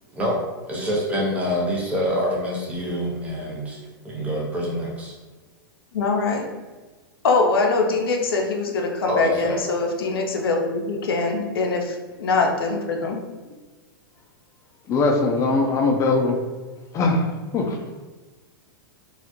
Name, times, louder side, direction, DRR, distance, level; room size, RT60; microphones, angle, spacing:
voice 1, 0.7-5.1 9.1-9.6, equal, 10° right, -4 dB, 0.7 m, -26 dB
voice 2, 5.9-6.5 7.2-13.2, left 3 dB, 80° left, 2 dB, 0.5 m, -23 dB
voice 3, 14.9-16.4 16.9-17.2 17.5-17.8, left 3 dB, 25° left, 2 dB, 0.4 m, -20 dB
2.3 x 2.0 x 2.9 m, 1.3 s
hypercardioid pair, 115°, 12 cm